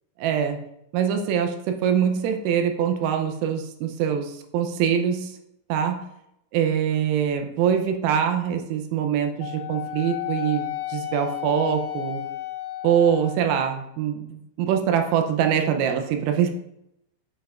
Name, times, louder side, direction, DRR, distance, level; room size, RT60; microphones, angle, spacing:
voice 1, 0.2-0.6 0.9-5.4 5.7-6.0 6.5-12.2 12.8-16.5, right 8 dB, 90° right, 5 dB, 3.3 m, -24 dB
Wind instrument woodwind instrument, 9.4-13.6, left 13 dB, 80° left, 3.2 m, -32 dB
8.9 x 5.5 x 2.4 m, 0.79 s
omnidirectional pair, 6.0 m